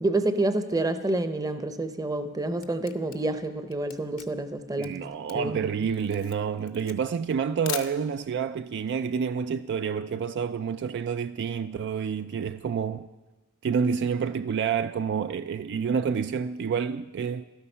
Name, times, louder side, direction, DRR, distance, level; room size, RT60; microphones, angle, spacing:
voice 1, 0.0-5.0 5.3-5.9, right 2 dB, 15° right, 0.7 m, -28 dB
Camera, 2.2-8.4, left 11 dB, 70° left, 0.8 m, -41 dB
voice 2, 4.8-13.1 13.6-17.4, right 6 dB, 55° right, 0.3 m, -28 dB
12.5 x 12.5 x 5.6 m
head